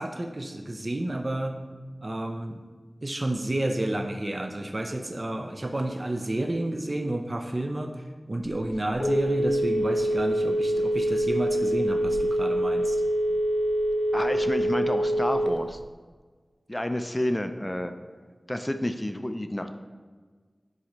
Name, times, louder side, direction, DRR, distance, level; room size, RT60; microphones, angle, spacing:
voice 1, 0.0-1.6 2.0-2.6 3.0-7.9 8.3-13.0, right 1 dB, 45° right, 4 dB, 0.5 m, -30 dB
Telephone, 8.4-15.8, equal, 80° left, 0.6 m, -25 dB
voice 2, 14.1-15.8 16.7-17.9 18.5-19.7, left 1 dB, 20° left, 8 dB, 0.4 m, -30 dB
4.8 x 4.1 x 5.2 m, 1.5 s
wide cardioid pair, 40°, 0 cm